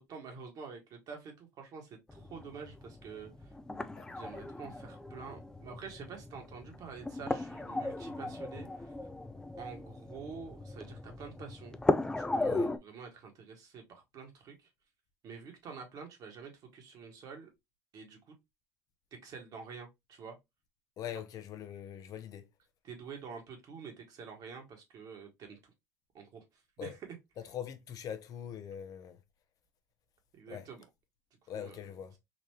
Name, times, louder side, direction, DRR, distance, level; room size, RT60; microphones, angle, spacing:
voice 1, 0.0-3.5 4.1-8.9 9.6-11.8 12.2-14.7 15.2-17.5 17.9-18.4 19.2-20.3 22.8-25.7 26.1-26.4 26.8-27.1 30.3-30.8 31.5-31.9, right 6 dB, 50° right, 1.6 m, -48 dB
sound 1, 2.1-12.8, left 2 dB, 10° left, 0.5 m, -37 dB
voice 2, 12.4-12.7 21.0-22.5 26.8-26.9 27.4-29.2 30.5-30.7 31.5-32.1, left 9 dB, 50° left, 0.7 m, -42 dB
4.0 x 2.6 x 3.2 m
hypercardioid pair, 85°, 8 cm